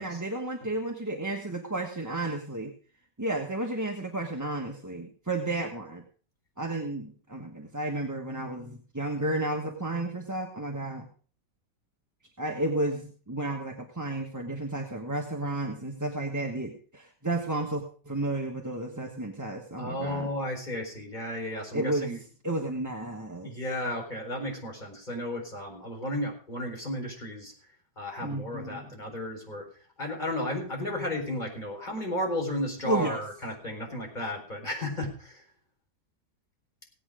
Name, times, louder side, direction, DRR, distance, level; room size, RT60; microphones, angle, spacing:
voice 1, 0.0-2.7 3.2-6.0 6.6-11.1 12.4-20.3 21.7-22.1 22.4-23.6 28.2-29.0 32.8-33.2, right 2 dB, 10° right, 1 dB, 1.1 m, -32 dB
voice 2, 19.8-22.2 23.4-27.5 28.0-29.6 30.0-35.4, left 1 dB, 25° left, 0 dB, 4.6 m, -33 dB
17.5 x 8.8 x 4.9 m, 0.42 s
omnidirectional pair, 1.8 m